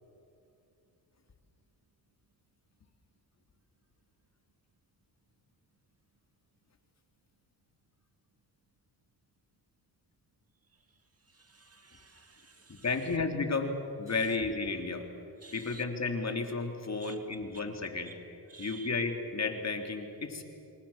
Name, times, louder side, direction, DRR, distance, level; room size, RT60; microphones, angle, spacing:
voice 1, 11.3-12.8 15.4-15.8 17.0-17.2 18.0-18.1 18.5-18.9, right 5 dB, 35° right, 2.2 m, -52 dB
voice 2, 12.7-15.1 15.5-18.2 18.6-20.4, left 4 dB, 35° left, 3.5 m, -33 dB
27.0 x 25.0 x 7.4 m
cardioid pair, 85°, 43 cm